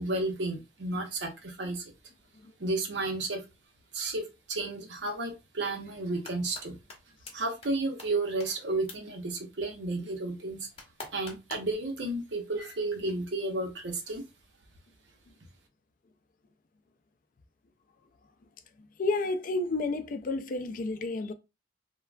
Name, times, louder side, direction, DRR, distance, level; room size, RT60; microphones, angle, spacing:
voice 1, 0.0-1.9 2.6-3.4 3.9-6.8 7.3-10.7 11.1-14.2, right 2 dB, 75° right, 0.7 m, -32 dB
sound 1, 6.0-6.6 6.9-7.0 7.3-7.4 7.6-7.7 8.0-8.1 8.4-8.5 8.9-9.0 10.8-11.7, left 2 dB, 35° left, 0.8 m, -42 dB
voice 2, 19.0-21.3, left 3 dB, 50° left, 0.4 m, -30 dB
3.2 x 2.2 x 2.4 m
head